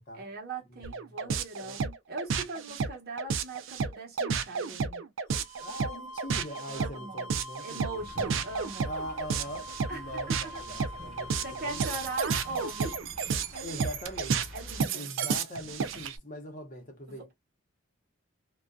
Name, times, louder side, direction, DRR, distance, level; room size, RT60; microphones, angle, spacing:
voice 1, 0.1-5.0 6.7-7.3 7.6-8.9 9.9-10.6 11.4-13.0 13.5-13.9 14.5-15.1 17.1-17.3, right 3 dB, 45° right, 0.9 m, -40 dB
voice 2, 0.7-1.8 5.6-8.0 8.8-12.0 13.6-14.5 14.9-17.3, equal, 35° left, 0.7 m, -42 dB
sound 1, 0.8-16.2, right 5 dB, 60° right, 0.4 m, -31 dB
sound 2, 5.3-13.0, left 1 dB, 75° left, 0.8 m, -45 dB
sound 3, 7.9-14.8, equal, 30° right, 1.0 m, -48 dB
2.5 x 2.2 x 2.3 m
head